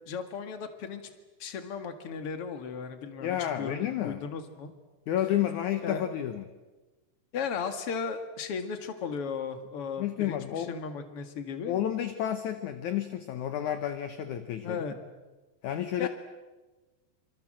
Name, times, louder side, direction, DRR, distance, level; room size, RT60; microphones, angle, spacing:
voice 1, 0.1-1.0 1.4-3.8 4.0-4.7 5.8-6.0 7.3-11.8 14.6-15.0 16.0-16.1, left 6 dB, 45° left, 8 dB, 2.2 m, -36 dB
voice 2, 3.2-4.2 5.1-6.4 10.0-10.7 11.7-14.9 15.6-16.1, left 11 dB, 65° left, 9 dB, 2.0 m, -31 dB
27.0 x 26.0 x 7.7 m, 1.2 s
omnidirectional pair, 4.9 m